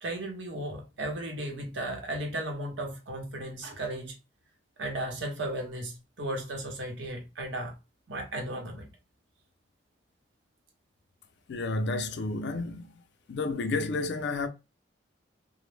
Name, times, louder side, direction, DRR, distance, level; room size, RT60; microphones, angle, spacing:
voice 1, 0.0-4.1 4.8-7.7 8.1-8.9, right 1 dB, 75° right, 0.8 m, -35 dB
voice 2, 11.5-12.9 13.3-14.5, left 3 dB, 65° left, 0.4 m, -31 dB
2.0 x 2.0 x 3.2 m
head